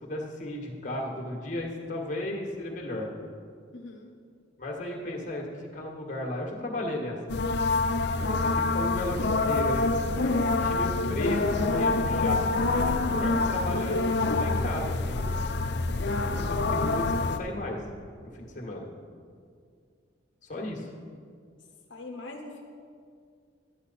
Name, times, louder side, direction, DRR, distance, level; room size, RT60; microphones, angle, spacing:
voice 1, 0.0-3.1 4.6-7.2 8.2-15.2 16.3-17.8 18.3-18.9 20.5-20.9, left 1 dB, 40° left, -1 dB, 1.7 m, -34 dB
voice 2, 3.7-4.1 16.0-16.3 21.9-22.6, left 2 dB, 80° left, 1 dB, 0.9 m, -43 dB
sound 1, 7.3-17.4, left 3 dB, 60° left, 0.5 m, -26 dB
12.0 x 10.0 x 4.1 m, 2.2 s
head